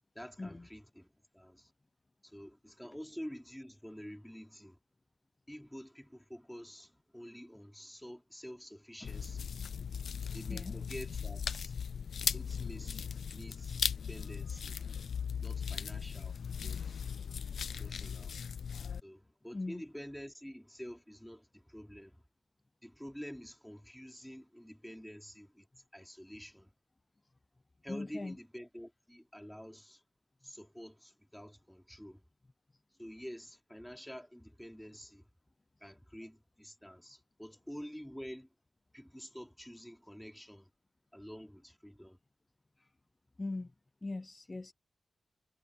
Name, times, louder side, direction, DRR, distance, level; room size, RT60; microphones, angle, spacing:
voice 1, 0.2-1.1 1.3-1.7 2.2-4.8 5.5-9.5 10.3-11.7 12.3-13.8 14.1-14.8 15.4-16.4 16.6-17.0 17.7-18.3 19.0-22.2 22.8-25.7 25.9-26.7 27.8-30.0 30.4-32.2 33.0-35.2 35.8-38.5 38.9-40.7 41.1-42.2, equal, 5° left, 4.1 m, -48 dB
sound 1, 9.0-19.0, left 7 dB, 85° left, 0.4 m, -38 dB
voice 2, 19.5-19.8 27.9-28.4 42.8-42.9 43.4-43.7 44.0-44.7, left 2 dB, 35° left, 0.7 m, -40 dB
cardioid pair, 50°, 0 cm